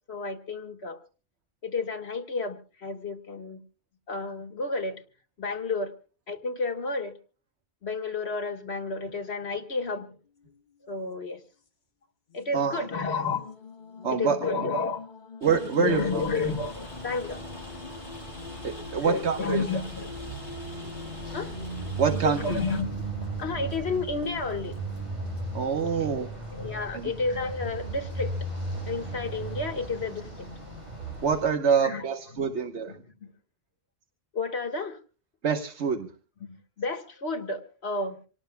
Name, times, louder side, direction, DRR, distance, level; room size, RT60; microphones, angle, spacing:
voice 1, 0.1-1.0 1.6-3.6 4.1-5.0 5.4-5.9 6.3-7.1 7.8-10.2 10.9-11.4 12.3-13.4 14.1-15.0 15.8-17.4 19.0-20.1 21.3-21.5 22.1-23.1 23.4-24.7 26.0-26.2 26.5-28.3 28.9-30.5 31.8-32.0 32.3-32.5 32.9-33.3 34.3-35.0 36.4-38.2, left 3 dB, 75° left, 7 dB, 1.8 m, -31 dB
sound 1, 10.3-10.9 11.2-11.3 12.3-24.8, left 4 dB, 45° left, 1.2 m, -46 dB
voice 2, 12.5-12.8 14.0-14.4 15.4-16.5 18.6-19.6 22.0-22.6 25.5-26.3 26.9-27.1 31.2-32.9 35.4-36.1, right 6 dB, 85° right, 5 dB, 1.4 m, -26 dB
Rain, 15.4-22.8, equal, 20° left, 5.9 m, -47 dB
sound 2, 15.9-31.5, right 2 dB, 40° right, 8.1 m, -37 dB
26.5 x 18.5 x 2.2 m, 0.36 s
omnidirectional pair, 1.1 m